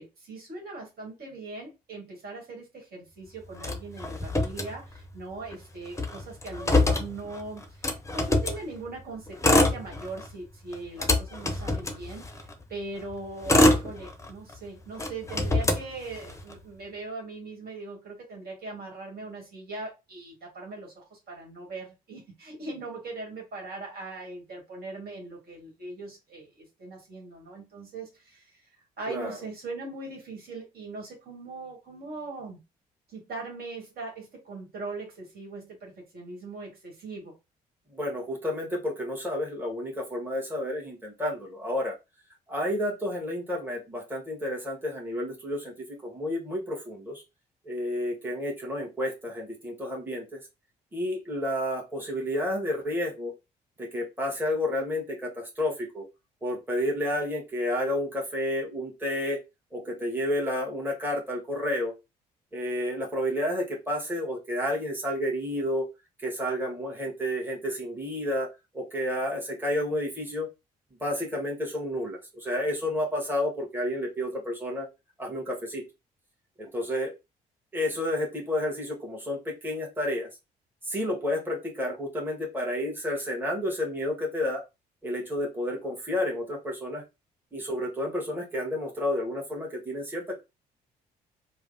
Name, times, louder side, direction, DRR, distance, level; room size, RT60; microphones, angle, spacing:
voice 1, 0.0-28.7 29.0-32.6 33.1-37.3, right 3 dB, 50° right, 1.5 m, -40 dB
Motor vehicle (road), 3.6-5.2 5.5-5.6 5.9-8.6 9.3-10.3 10.7-12.5 13.1-14.5 15.0-16.5, left 2 dB, 15° left, 0.7 m, -25 dB
voice 2, 37.9-41.9 42.5-47.2 47.6-50.4 50.9-53.3 53.8-56.0 56.4-59.4 59.7-61.9 62.5-65.9 66.2-70.5 71.0-74.9 75.2-75.8 76.6-77.1 77.7-80.3 80.8-84.6 85.0-87.0 87.5-90.4, left 1 dB, 10° right, 1.4 m, -30 dB
3.2 x 2.1 x 2.6 m
hypercardioid pair, 50°, 20 cm